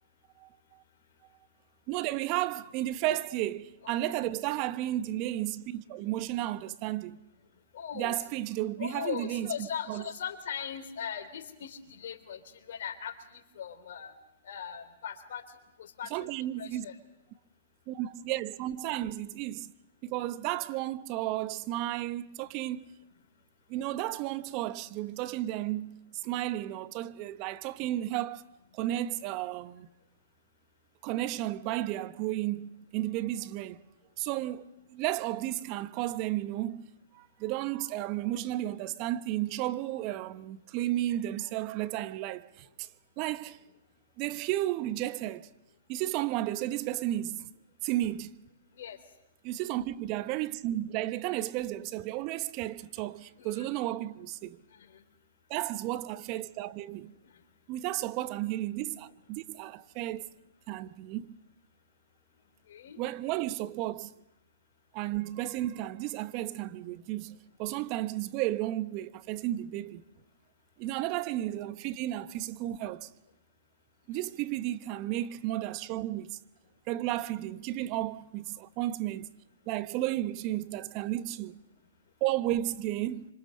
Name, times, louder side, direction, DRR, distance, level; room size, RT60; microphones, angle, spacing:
voice 1, 0.4-0.8 1.9-7.2 7.9-10.0 16.1-16.9 17.9-19.7 20.0-22.9 23.7-28.4 28.7-29.9 31.0-33.8 34.2-36.9 37.1-42.9 43.2-43.6 44.2-45.5 45.9-47.5 47.8-48.3 49.4-54.6 55.5-57.1 57.7-60.3 60.7-61.4 63.0-64.1 64.9-70.0 70.8-73.1 74.1-76.4 76.9-79.3 79.7-81.6 82.2-83.3, right 14 dB, 40° right, 1.0 m, -33 dB
voice 2, 7.7-8.2 8.8-12.4 12.7-14.1 14.4-15.4 15.8-16.3 16.6-17.0 48.8-49.0 53.4-53.7 54.7-55.0 62.7-63.0, left 8 dB, 65° left, 3.7 m, -39 dB
26.5 x 25.5 x 6.6 m
hypercardioid pair, 135°, 0 cm